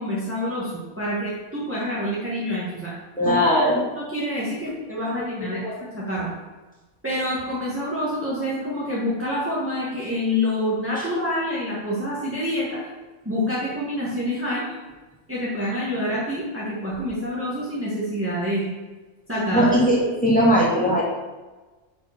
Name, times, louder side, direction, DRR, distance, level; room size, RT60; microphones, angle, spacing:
voice 1, 0.0-2.9 3.3-6.3 7.0-12.9 13.3-14.6 15.3-18.7 19.3-19.7, left 1 dB, 10° right, -8 dB, 1.8 m, -27 dB
voice 2, 3.2-3.8 5.1-5.7 11.0-11.1 19.5-21.0, equal, 5° left, -6 dB, 2.3 m, -20 dB
7.2 x 5.0 x 6.0 m, 1.2 s
omnidirectional pair, 1.3 m